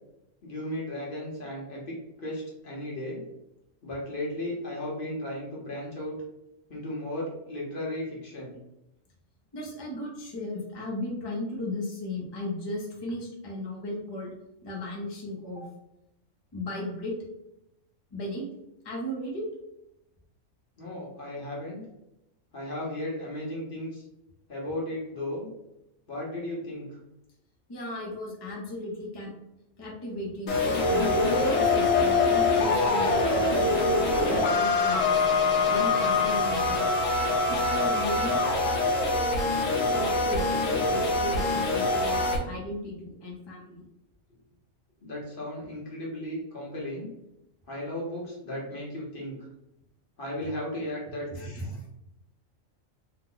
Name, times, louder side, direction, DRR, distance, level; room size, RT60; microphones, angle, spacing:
voice 1, 0.4-3.2 3.8-6.2 6.7-8.5 20.8-21.8 22.5-24.0 24.5-25.5 26.1-27.0 45.0-47.1 47.7-49.4 50.2-51.5, left 1 dB, 45° left, -4 dB, 1.0 m, -35 dB
voice 2, 9.5-14.3 14.6-15.6 16.5-17.1 18.1-18.4 18.8-19.4 27.7-29.3 29.8-33.7 34.3-35.3 35.6-36.9 37.5-38.4 39.9-43.8 51.3-51.9, left 1 dB, 25° left, -4 dB, 0.6 m, -36 dB
sound 1, 30.5-42.4, left 3 dB, 80° left, 1.2 m, -24 dB
2.9 x 2.1 x 3.7 m, 0.87 s
omnidirectional pair, 1.4 m